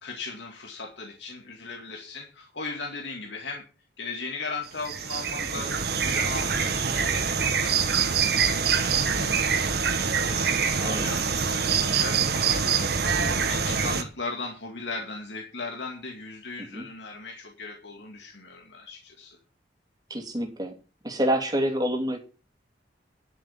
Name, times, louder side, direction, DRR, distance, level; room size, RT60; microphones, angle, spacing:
voice 1, 0.0-3.6 4.0-12.6 13.5-19.4, left 3 dB, 70° left, 2 dB, 2.3 m, -38 dB
sound 1, 4.7-14.0, right 6 dB, 60° right, 1.6 m, -25 dB
voice 2, 20.1-20.7 21.0-22.2, equal, 20° right, 2 dB, 2.9 m, -27 dB
11.0 x 7.7 x 7.3 m, 0.34 s
head